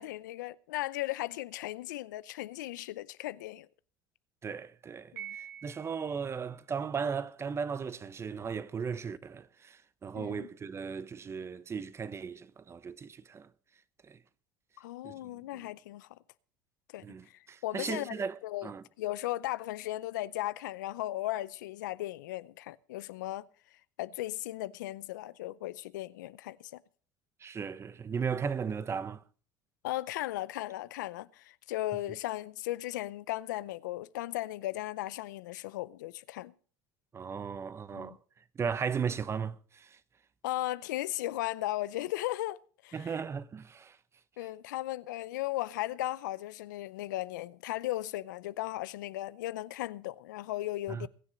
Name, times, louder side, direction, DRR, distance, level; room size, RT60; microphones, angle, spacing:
voice 1, 0.0-3.7 5.1-5.4 10.1-10.5 14.8-16.1 16.9-18.1 18.4-18.7 19.0-23.5 24.0-26.8 29.8-36.5 37.9-38.2 40.4-42.6 42.8-43.2 44.4-51.1, left 16 dB, 90° left, 0.5 m, -36 dB
voice 2, 4.4-13.5 14.1-14.2 15.0-15.7 17.0-18.8 27.4-29.2 37.1-38.2 38.5-40.0 42.9-44.0 50.9-51.1, right 6 dB, 25° right, 0.9 m, -36 dB
Piano, 5.2-6.3, right 10 dB, 85° right, 4.7 m, -45 dB
21.5 x 7.3 x 5.1 m
supercardioid pair, 95°, 10 cm